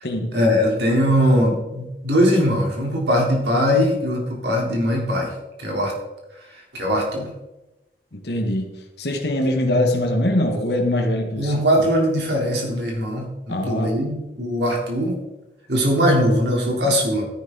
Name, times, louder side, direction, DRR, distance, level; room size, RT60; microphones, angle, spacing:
voice 1, 0.3-5.3 5.6-5.9 6.7-7.3 11.4-15.2 15.7-17.2, equal, 75° right, -1 dB, 3.7 m, -20 dB
voice 2, 8.1-8.7 9.0-11.5 13.5-13.9, left 1 dB, 70° left, 3 dB, 1.4 m, -22 dB
13.0 x 10.5 x 4.0 m, 0.99 s
head